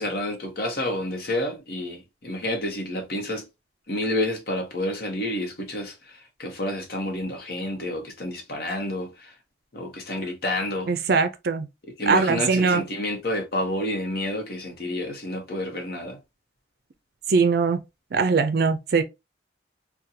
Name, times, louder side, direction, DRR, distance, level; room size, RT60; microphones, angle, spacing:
voice 1, 0.0-3.4 3.9-9.3 9.7-10.9 12.0-16.2, left 1 dB, 55° left, 0.9 m, -29 dB
voice 2, 10.9-11.7 12.1-12.8 17.3-17.8 18.1-19.0, right 4 dB, 55° right, 0.4 m, -21 dB
4.0 x 2.2 x 2.6 m
head